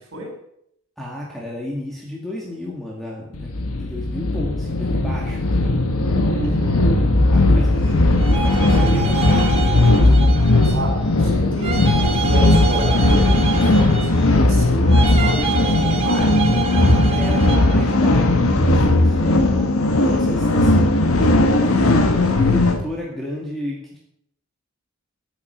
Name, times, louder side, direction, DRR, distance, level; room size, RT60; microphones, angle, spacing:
voice 1, 1.0-5.8 7.3-7.7 8.4-10.2 17.1-24.0, left 1 dB, ahead, -4 dB, 2.2 m, -32 dB
sound 1, 3.3-22.8, left 2 dB, 85° left, 1.4 m, -17 dB
voice 2, 6.3-6.9 7.6-8.3 10.6-16.4, right 1 dB, 65° right, 0 dB, 5.2 m, -31 dB
sound 2, 8.1-11.0 11.6-14.4 14.9-17.9, right 6 dB, 30° right, 1.3 m, -27 dB
10.0 x 9.4 x 6.4 m, 0.73 s
head